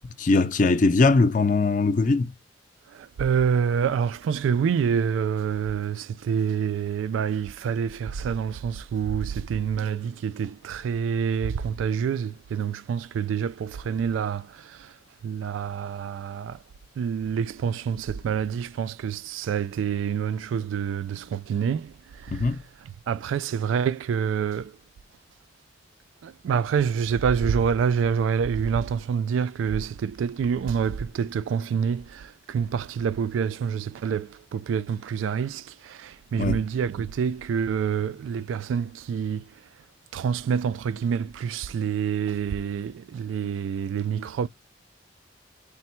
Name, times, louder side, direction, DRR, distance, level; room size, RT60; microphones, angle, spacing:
voice 1, 0.2-2.3 22.3-22.6 36.4-36.7, left 3 dB, 40° left, 0.4 m, -21 dB
voice 2, 2.9-15.0 15.2-16.6 17.0-24.8 26.2-39.7 40.1-44.5, right 7 dB, 90° right, 0.3 m, -27 dB
3.4 x 2.1 x 4.2 m
head